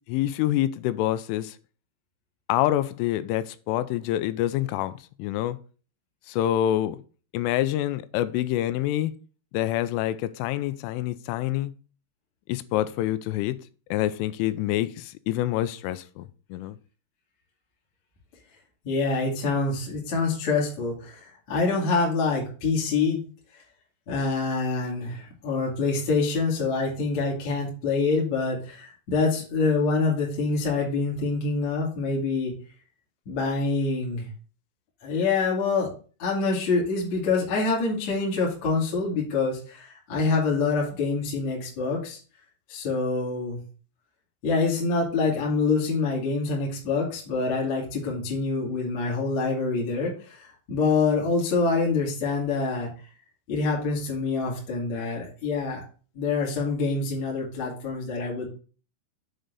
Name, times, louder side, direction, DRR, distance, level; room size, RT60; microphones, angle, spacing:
voice 1, 0.1-1.5 2.5-4.9 5.2-5.6 6.3-7.0 7.3-9.1 9.5-11.7 12.5-13.6 13.9-16.8, left 13 dB, 90° left, 3.1 m, -26 dB
voice 2, 18.8-23.2 24.1-32.5 33.3-34.3 35.0-35.9 36.2-42.2 42.7-43.6 44.4-52.9 53.5-55.8 56.1-58.5, left 4 dB, 45° left, 2.7 m, -26 dB
8.0 x 3.8 x 6.7 m
omnidirectional pair, 5.6 m